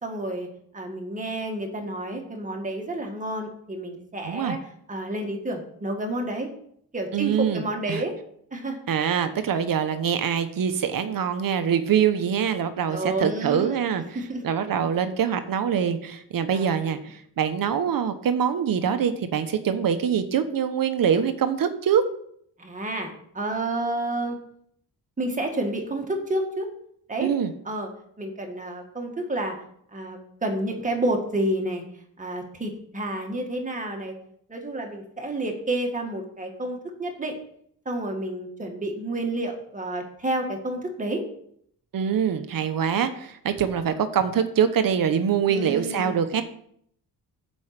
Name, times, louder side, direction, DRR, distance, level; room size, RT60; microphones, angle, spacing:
voice 1, 0.0-0.5 0.7-6.5 6.9-8.1 8.5-8.8 12.9-13.8 14.1-14.4 16.5-17.0 22.6-24.4 25.2-26.7 27.1-27.3 27.6-27.9 28.2-29.6 29.9-31.8 32.2-34.2 34.5-37.4 37.8-41.2 45.5-46.4, right 1 dB, 20° right, 2 dB, 1.7 m, -30 dB
voice 2, 4.2-4.6 7.1-8.0 8.9-14.0 14.4-22.0 27.2-27.5 41.9-46.4, right 8 dB, 60° right, 9 dB, 1.0 m, -24 dB
7.8 x 5.5 x 7.5 m, 0.66 s
wide cardioid pair, 165°, 38 cm